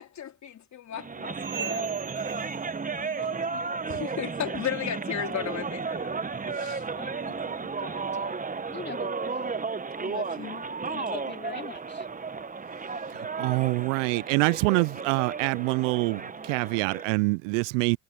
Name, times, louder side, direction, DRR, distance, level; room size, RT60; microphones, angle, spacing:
voice 1, 0.0-2.7 3.0-6.2 6.5-6.9 7.2-7.7 10.0-11.1, left 10 dB, 50° left, 3.8 m, -37 dB
sound 1, 0.9-17.2, right 4 dB, 20° right, 1.4 m, -33 dB
sound 2, 1.3-3.5 3.8-4.2 4.6-4.9 5.5-5.6 6.3-6.4 7.2-7.3, right 9 dB, 55° right, 3.0 m, -42 dB
voice 2, 3.2-3.9 6.9-9.6 10.9-12.1, left 5 dB, 30° left, 2.8 m, -44 dB
voice 3, 13.1-18.0, right 30 dB, 80° right, 0.6 m, -26 dB
hypercardioid pair, 60°, 36 cm